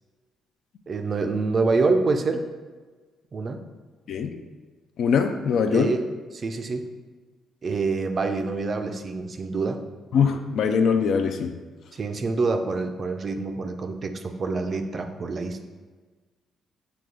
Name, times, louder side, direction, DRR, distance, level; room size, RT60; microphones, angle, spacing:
voice 1, 0.9-2.5 3.3-3.6 5.7-6.1 6.3-6.9 7.6-9.8 11.9-15.6, right 3 dB, 45° right, 6 dB, 0.4 m, -26 dB
voice 2, 5.0-5.9 10.1-11.6, left 6 dB, 70° left, 7 dB, 0.3 m, -22 dB
4.8 x 2.3 x 3.7 m, 1.4 s
cardioid pair, 90°, 0 cm